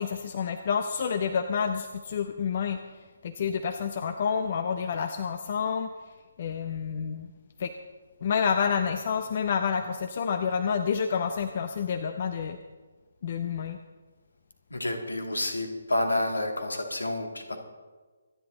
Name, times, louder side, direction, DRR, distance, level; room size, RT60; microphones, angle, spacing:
voice 1, 0.0-2.8 3.2-5.9 6.4-7.3 7.6-7.7 8.2-12.6 13.2-13.8, left 6 dB, 40° left, 9 dB, 0.7 m, -29 dB
voice 2, 14.7-17.6, left 1 dB, 70° left, 4 dB, 2.4 m, -29 dB
25.0 x 10.5 x 3.9 m, 1.4 s
figure-of-eight pair, 140°, 0 cm